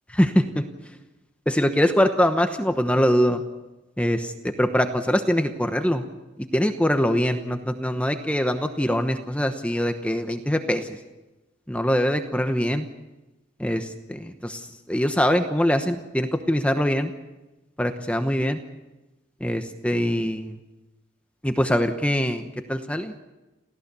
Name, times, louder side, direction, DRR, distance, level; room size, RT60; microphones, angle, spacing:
voice 1, 0.1-0.6 1.5-3.4 4.0-4.3 4.6-6.0 6.5-10.9 11.7-12.8 13.6-14.6 14.9-17.1 17.8-18.6 19.4-20.5 21.4-22.4 22.7-23.1, equal, 5° left, 7 dB, 1.0 m, -23 dB
28.0 x 16.0 x 6.9 m, 1.1 s
head